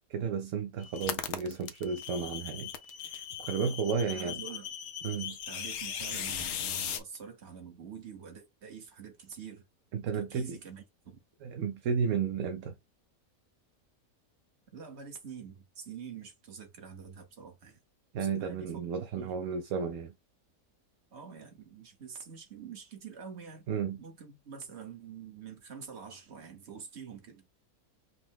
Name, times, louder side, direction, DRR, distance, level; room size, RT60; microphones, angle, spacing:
voice 1, 0.1-2.7 3.0-4.4 5.0-5.4 9.9-10.6 11.4-12.7 18.1-20.1 23.7-24.0, right 6 dB, 65° right, 0.9 m, -33 dB
sound 1, 0.8-7.0, left 8 dB, 60° left, 0.9 m, -38 dB
voice 2, 4.0-4.7 5.2-9.6 10.0-11.2 14.7-17.8 18.4-18.8 19.2-19.3 21.1-23.6 24.0-27.4, right 7 dB, 50° right, 1.4 m, -46 dB
5.3 x 2.2 x 3.5 m
omnidirectional pair, 1.5 m